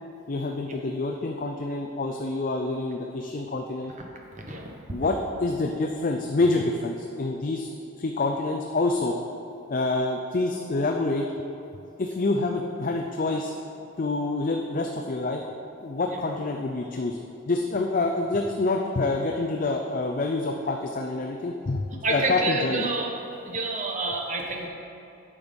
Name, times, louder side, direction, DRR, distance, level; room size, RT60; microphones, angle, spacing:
voice 1, 0.3-3.9 4.9-9.1 9.7-11.3 12.0-13.5 14.0-15.4 15.8-17.2 17.5-22.9, left 2 dB, 40° left, 2 dB, 0.4 m, -27 dB
voice 2, 22.0-23.1 23.4-24.7, right 2 dB, 35° right, 0 dB, 1.1 m, -28 dB
8.8 x 6.3 x 5.2 m, 2.7 s
head